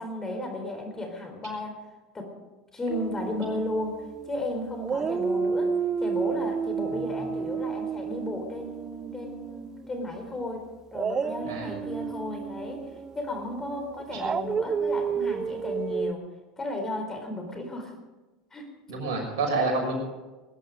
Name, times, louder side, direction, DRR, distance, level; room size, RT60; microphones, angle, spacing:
voice 1, 0.0-1.8 2.1-2.4 2.7-12.9 13.1-16.2 16.6-17.9 18.5-18.7, left 1 dB, 20° left, 4 dB, 4.2 m, -34 dB
Dog, 2.9-4.4 4.8-9.9 10.9-16.1, right 6 dB, 25° right, 0.6 m, -31 dB
voice 2, 11.5-11.8 14.1-14.2 18.9-20.0, right 3 dB, 65° right, 1 dB, 6.2 m, -29 dB
21.0 x 11.5 x 5.2 m, 1.2 s
hypercardioid pair, 90°, 2 cm